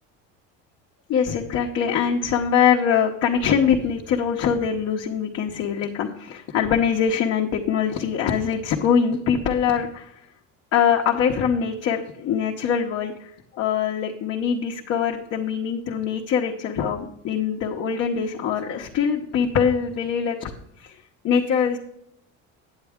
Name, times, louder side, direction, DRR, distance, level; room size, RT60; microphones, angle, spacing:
voice 1, 1.1-10.2 10.7-20.5 20.8-21.0 21.2-21.8, left 7 dB, 55° left, 0 dB, 0.9 m, -23 dB
8.9 x 7.8 x 3.6 m, 0.75 s
cardioid pair, 120°, 30 cm